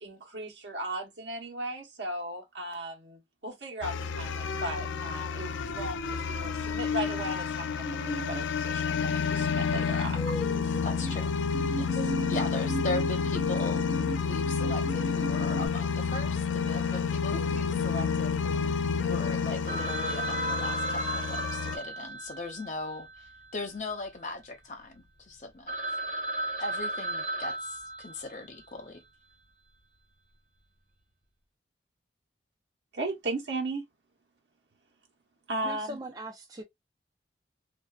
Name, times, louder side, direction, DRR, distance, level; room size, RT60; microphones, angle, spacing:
voice 1, 0.0-10.3 32.9-33.8 35.5-36.0, right 2 dB, 75° right, 1.0 m, -36 dB
sound 1, 3.8-21.8, left 6 dB, 85° left, 0.3 m, -30 dB
sound 2, 7.8-8.4 10.2-11.1 11.5-15.7, right 1 dB, 15° left, 1.3 m, -36 dB
voice 2, 10.6-11.3 11.7-13.9 14.2-25.7 26.6-29.0, left 2 dB, 40° left, 0.6 m, -39 dB
Telephone, 19.7-24.0 24.3-24.4 24.9-25.0 25.4-25.5 25.7-28.6, right 2 dB, 45° right, 0.9 m, -35 dB
voice 3, 35.6-36.6, right 1 dB, 20° right, 0.4 m, -40 dB
2.6 x 2.3 x 2.3 m
head